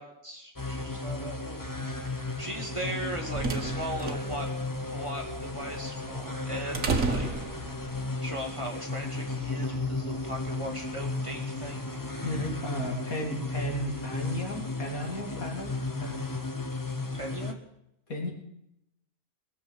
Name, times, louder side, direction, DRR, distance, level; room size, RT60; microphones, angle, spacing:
voice 1, 0.0-4.5 4.9-7.3 8.2-12.0 17.1-17.6, right 1 dB, 20° right, 0 dB, 2.1 m, -38 dB
sound 1, 0.6-17.5, left 3 dB, 15° left, 0.9 m, -34 dB
sound 2, 2.8-8.1, right 4 dB, 65° right, 1.8 m, -33 dB
voice 2, 12.2-16.1 18.1-18.3, equal, 70° left, 1 dB, 3.4 m, -34 dB
21.0 x 7.0 x 8.0 m, 0.81 s
omnidirectional pair, 1.5 m